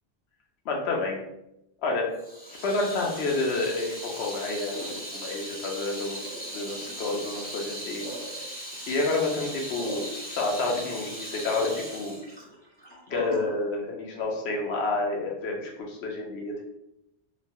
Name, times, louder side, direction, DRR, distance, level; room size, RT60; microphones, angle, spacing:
voice 1, 0.6-1.2 1.8-2.1 2.6-6.2 6.5-8.0 8.9-10.0 10.3-12.2 13.1-16.6, left 3 dB, 70° left, 0 dB, 0.9 m, -29 dB
Water tap faucet / Sink (filling or washing), 2.2-13.5, right 1 dB, 10° left, 0.4 m, -38 dB
3.0 x 2.1 x 2.6 m, 0.85 s
omnidirectional pair, 1.2 m